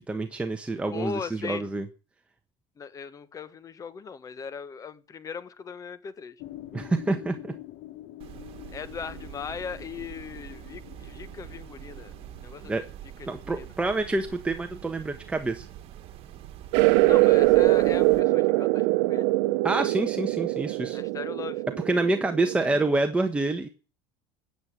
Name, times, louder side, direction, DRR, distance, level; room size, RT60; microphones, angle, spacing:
voice 1, 0.1-1.9 6.7-7.5 12.6-12.8 13.3-15.7 19.6-21.0 21.8-23.7, right 2 dB, 10° right, 1.3 m, -27 dB
voice 2, 0.9-1.6 2.8-6.4 8.7-12.1 12.4-12.7 13.2-13.7 17.1-19.3 20.9-21.6, left 6 dB, 25° left, 1.2 m, -38 dB
sound 1, 6.4-12.6, left 14 dB, 60° left, 1.1 m, -46 dB
sound 2, 8.2-18.2, right 11 dB, 50° right, 1.9 m, -45 dB
sound 3, 16.7-22.9, right 20 dB, 75° right, 0.8 m, -23 dB
14.5 x 8.1 x 8.7 m
supercardioid pair, 120°, 12 cm